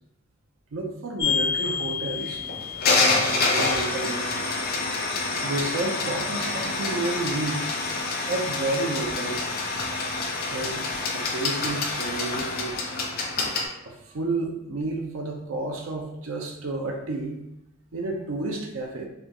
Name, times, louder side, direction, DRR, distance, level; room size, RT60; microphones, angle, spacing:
voice 1, 0.7-2.4 3.0-4.5 5.4-7.7 8.3-9.5 10.5-10.9 11.1-12.8 13.8-17.4 17.9-19.1, right 2 dB, 75° right, 1 dB, 0.5 m, -31 dB
sound 1, 1.2-13.6, left 3 dB, 45° left, 0.6 m, -27 dB
4.8 x 2.3 x 2.9 m, 0.84 s
head